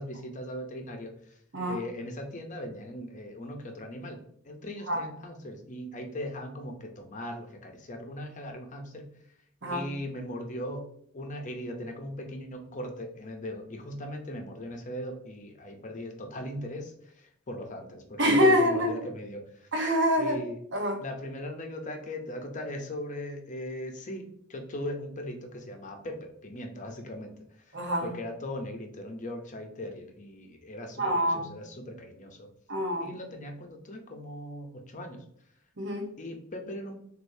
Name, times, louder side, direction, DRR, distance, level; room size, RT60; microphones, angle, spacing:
voice 1, 0.0-1.4 1.7-9.1 9.7-10.9 11.1-19.7 20.2-20.6 21.0-27.8 28.0-32.5 33.0-35.2 36.2-37.0, left 1 dB, 40° left, 0.7 m, -39 dB
voice 2, 18.2-18.9 19.7-20.4 20.7-21.0 27.7-28.1 31.0-31.4 32.7-33.1 35.8-36.1, equal, 60° right, 1.0 m, -25 dB
6.4 x 2.6 x 2.7 m
head